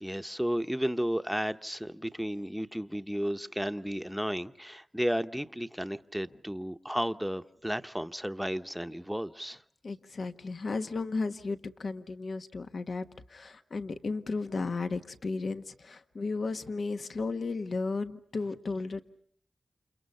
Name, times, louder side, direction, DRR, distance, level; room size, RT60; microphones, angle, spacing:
voice 1, 0.0-9.6, equal, ahead, 1.0 m, -33 dB
voice 2, 9.8-19.0, left 3 dB, 65° left, 1.4 m, -34 dB
29.5 x 28.0 x 5.6 m
wide cardioid pair, 70°, 0 cm